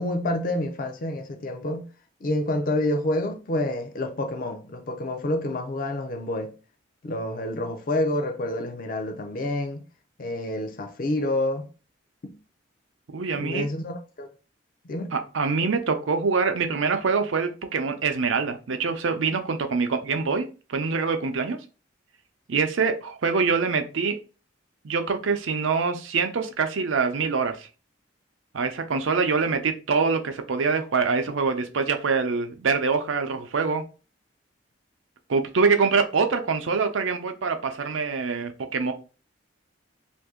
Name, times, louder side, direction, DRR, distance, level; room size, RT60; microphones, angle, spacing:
voice 1, 0.0-1.9 2.2-6.5 7.0-9.8 10.2-11.7 12.2-12.4 13.3-14.3 14.8-15.2, left 1 dB, 45° left, 0.4 m, -28 dB
voice 2, 13.1-13.7 15.1-21.6 22.5-24.1 24.8-27.7 28.5-33.8 35.3-38.9, right 5 dB, 85° right, 0.5 m, -25 dB
2.7 x 2.6 x 3.6 m
head